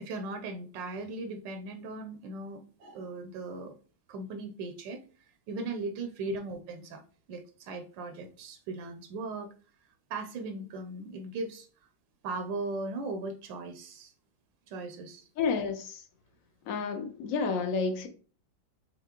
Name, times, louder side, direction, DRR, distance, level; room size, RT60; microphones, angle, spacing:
voice 1, 0.0-3.7 4.1-5.0 5.5-7.0 7.3-9.5 10.1-11.7 12.2-14.1 14.7-15.3, right 3 dB, 85° right, 1.3 m, -38 dB
voice 2, 15.4-16.0 16.7-18.1, left 5 dB, 65° left, 0.9 m, -30 dB
6.7 x 2.7 x 2.9 m
omnidirectional pair, 2.0 m